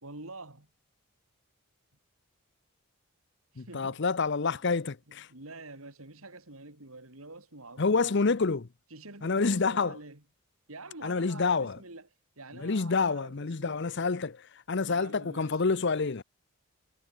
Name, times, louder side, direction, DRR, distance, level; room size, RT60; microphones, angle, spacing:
voice 1, 0.0-0.7 3.5-4.0 5.3-8.3 8.9-10.2 10.7-12.0 12.4-13.3 13.6-13.8 14.8-15.5, right 2 dB, 70° right, 4.2 m, -46 dB
voice 2, 3.6-5.3 7.8-8.7 9.2-10.0 11.0-11.8 12.5-16.2, left 4 dB, 50° left, 0.7 m, -28 dB
head